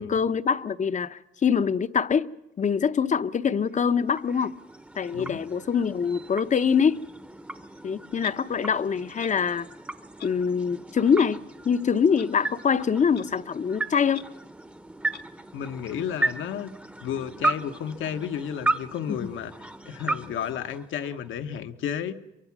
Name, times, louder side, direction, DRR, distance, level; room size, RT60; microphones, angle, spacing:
voice 1, 0.0-2.3 2.6-4.5 5.0-7.0 7.8-9.7 10.2-14.3 19.1-19.3, left 6 dB, 40° left, 0.8 m, -24 dB
sound 1, 3.6-21.4, right 2 dB, 5° right, 0.9 m, -35 dB
voice 2, 5.1-5.4 15.5-16.7 17.0-19.5 19.8-22.1, left 8 dB, 80° left, 1.3 m, -32 dB
Clock, 8.2-8.4 9.2-9.3 10.2-10.3 11.2-11.3 12.2-12.3 13.1-13.2 14.1-14.2 15.1-15.2, left 7 dB, 55° left, 1.1 m, -42 dB
23.5 x 23.5 x 6.1 m
cardioid pair, 90°, 20 cm